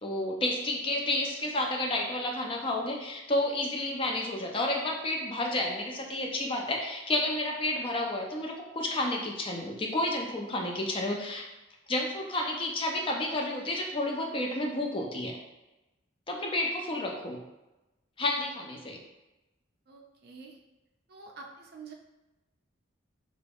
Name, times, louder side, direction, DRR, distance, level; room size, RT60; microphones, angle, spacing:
voice 1, 0.0-11.4 11.9-15.4 16.3-17.4 18.2-19.0, left 1 dB, 25° left, 1 dB, 0.4 m, -31 dB
voice 2, 19.9-20.6 21.1-21.9, right 4 dB, 50° right, 1 dB, 0.5 m, -47 dB
3.0 x 2.4 x 3.4 m, 1.0 s
head